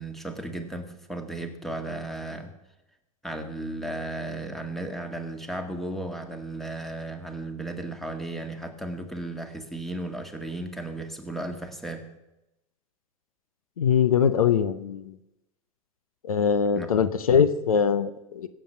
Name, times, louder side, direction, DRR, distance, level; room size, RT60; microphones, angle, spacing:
voice 1, 0.0-2.5 3.2-12.0 16.7-16.9, right 2 dB, ahead, 6 dB, 1.9 m, -35 dB
voice 2, 13.8-15.1 16.3-18.5, left 7 dB, 85° left, 13 dB, 0.8 m, -22 dB
16.0 x 7.7 x 6.9 m, 0.95 s
hypercardioid pair, 100°, 18 cm